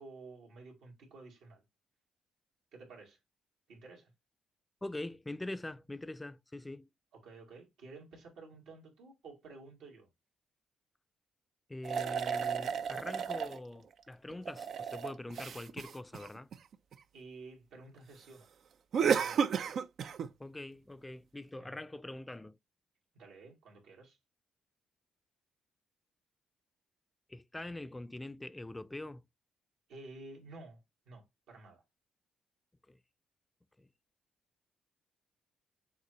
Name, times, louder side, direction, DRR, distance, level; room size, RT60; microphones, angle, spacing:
voice 1, 0.0-1.6 2.7-3.2 3.7-4.1 7.1-10.1 17.1-18.5 19.0-19.6 21.6-21.8 23.2-24.2 29.9-30.8 31.1-31.8, right 3 dB, 85° right, 2.1 m, -52 dB
voice 2, 4.8-6.9 11.7-16.5 20.4-22.6 27.3-29.2 32.9-33.0 33.8-33.9, left 1 dB, 15° left, 0.4 m, -43 dB
sound 1, 11.8-13.6 14.3-16.9 18.9-20.3, right 7 dB, 65° right, 0.4 m, -33 dB
6.7 x 2.6 x 3.0 m
cardioid pair, 70°, 0 cm